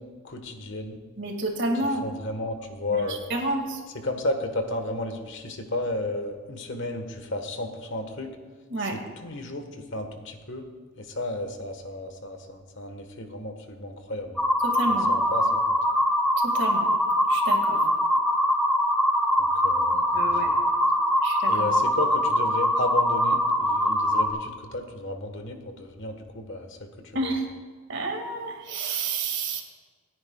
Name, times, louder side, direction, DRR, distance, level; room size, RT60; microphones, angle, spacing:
voice 1, 0.0-1.0 1.7-3.2 3.9-8.4 8.8-10.7 11.0-14.4 14.9-15.5 19.4-20.6 21.5-27.3, left 2 dB, 60° left, 5 dB, 1.5 m, -33 dB
voice 2, 1.2-2.1 3.3-3.8 8.7-8.9 14.6-15.1 16.4-16.9 17.3-17.8 20.1-20.5 21.2-21.8 27.1-27.5 27.9-29.6, right 2 dB, 60° right, 2 dB, 2.1 m, -29 dB
sound 1, 14.4-24.3, equal, ahead, 1.7 m, -23 dB
27.5 x 9.6 x 2.4 m, 1.5 s
head